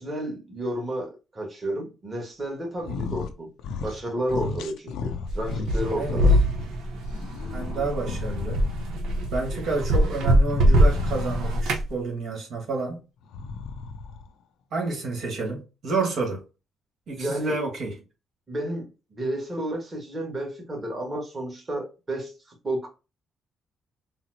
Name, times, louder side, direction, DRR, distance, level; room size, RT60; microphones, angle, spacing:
voice 1, 0.0-3.5 3.8-6.3 17.2-17.6 18.5-22.9, right 1 dB, 25° right, 1.3 m, -31 dB
sound 1, 2.8-3.3 3.6-4.0 4.3-6.7 7.1-9.0 10.4-11.8 13.2-14.3, left 5 dB, 85° left, 0.4 m, -34 dB
sound 2, 5.3-11.9, equal, 85° right, 0.7 m, -23 dB
voice 2, 7.5-8.6 9.3-13.0 14.7-16.4 17.1-17.9, right 3 dB, 70° right, 1.4 m, -29 dB
4.1 x 2.0 x 2.6 m
cardioid pair, 90°, 0 cm